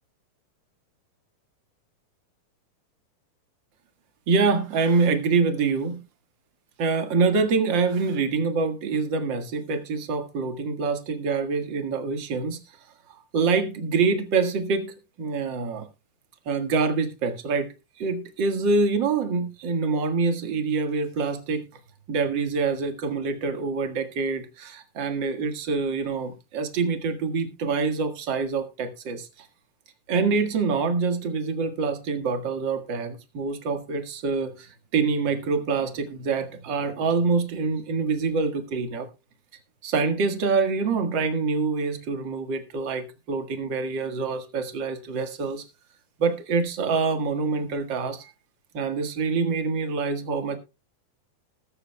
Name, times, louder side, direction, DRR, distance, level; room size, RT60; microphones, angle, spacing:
voice 1, 4.3-6.0 6.8-12.6 13.3-15.9 16.4-21.6 22.1-29.5 30.1-39.1 39.8-45.6 46.2-48.3 48.7-50.6, right 4 dB, 45° right, 1.7 m, -25 dB
20.0 x 9.9 x 2.3 m
omnidirectional pair, 4.1 m